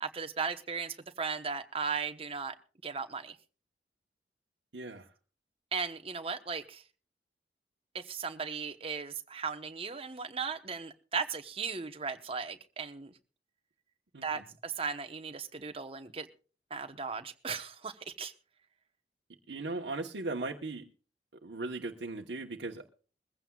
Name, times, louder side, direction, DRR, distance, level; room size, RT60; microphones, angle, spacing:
voice 1, 0.0-2.5 2.8-3.4 5.7-6.8 7.9-13.1 14.2-16.3 16.7-18.3, right 5 dB, 35° right, 9 dB, 1.0 m, -37 dB
voice 2, 4.7-5.1 14.1-14.4 19.5-20.8 21.4-22.9, right 2 dB, 85° right, 2 dB, 1.1 m, -38 dB
22.0 x 15.5 x 2.3 m, 0.37 s
head